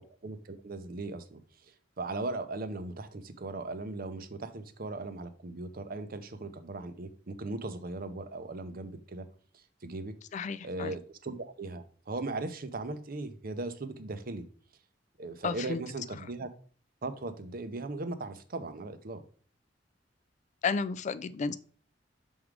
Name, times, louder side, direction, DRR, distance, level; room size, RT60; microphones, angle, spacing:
voice 1, 0.0-9.3 9.5-10.1 10.6-14.5 15.2-16.5 17.0-19.2, right 2 dB, 50° right, 10 dB, 0.7 m, -38 dB
voice 2, 10.3-11.0 15.4-15.8 20.6-21.6, left 5 dB, 40° left, 14 dB, 0.3 m, -32 dB
6.2 x 3.7 x 4.7 m, 0.43 s
head